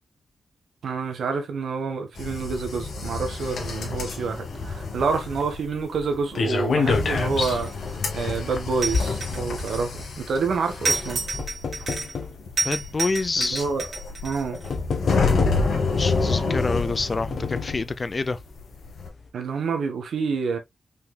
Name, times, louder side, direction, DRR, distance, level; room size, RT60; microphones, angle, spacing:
voice 1, 0.8-7.7 8.1-11.2 13.4-13.9 14.2-14.6 19.3-20.6, right 5 dB, 85° right, 1.3 m, -28 dB
sound 1, 2.2-18.1 18.3-19.1, left 4 dB, 90° left, 2.0 m, -29 dB
sound 2, 4.5-10.0 10.8-12.4 13.2-13.3 14.3-14.4 14.7-15.9 16.8-17.9 18.4-18.5 18.7-18.8, left 4 dB, 55° left, 1.2 m, -29 dB
sound 3, 7.3-7.9 8.8-10.1 10.8-12.2 12.6-14.7, right 3 dB, 50° right, 2.2 m, -30 dB
voice 2, 12.6-13.6 16.0-18.4, left 3 dB, 30° left, 0.5 m, -27 dB
5.6 x 4.1 x 2.3 m
wide cardioid pair, 175°, 0 cm